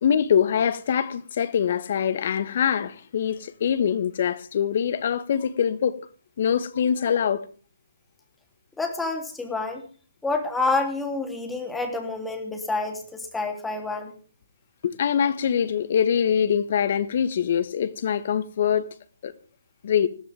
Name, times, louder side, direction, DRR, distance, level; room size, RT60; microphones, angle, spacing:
voice 1, 0.0-6.0 6.4-7.4 14.8-18.8 19.2-19.3 19.8-20.1, left 8 dB, 50° left, 1.6 m, -23 dB
voice 2, 8.8-9.8 10.2-14.1, left 3 dB, 5° left, 3.3 m, -28 dB
20.5 x 16.0 x 3.6 m
figure-of-eight pair, 140°, 0 cm